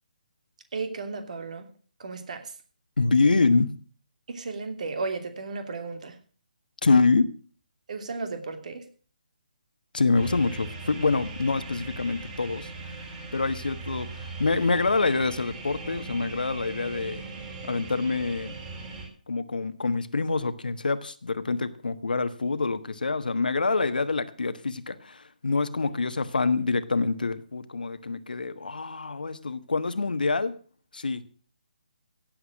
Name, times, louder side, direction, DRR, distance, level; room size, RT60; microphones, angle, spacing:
voice 1, 0.7-1.6 2.0-2.5 4.3-6.1 7.9-8.8, right 4 dB, 55° right, 7 dB, 2.9 m, -34 dB
voice 2, 3.0-3.7 6.8-7.2 9.9-17.2 17.6-18.6 19.3-30.5 30.9-31.2, left 3 dB, 85° left, 11 dB, 1.4 m, -26 dB
sound 1, 10.1-19.1, right 3 dB, 20° right, 3.8 m, -39 dB
16.5 x 8.0 x 6.4 m, 0.42 s
hypercardioid pair, 155°, 5 cm